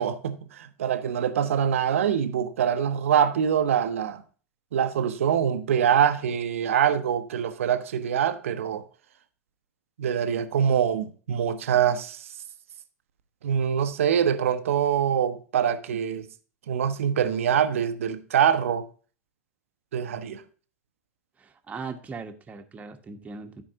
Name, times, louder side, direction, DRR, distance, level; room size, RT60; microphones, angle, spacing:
voice 1, 0.0-4.2 4.7-8.8 10.0-12.2 13.4-16.3 16.7-18.8 19.9-20.4, right 8 dB, 70° right, 0.8 m, -24 dB
voice 2, 21.4-23.6, right 4 dB, 20° right, 1.2 m, -39 dB
14.0 x 4.8 x 2.8 m
figure-of-eight pair, 95°, 8 cm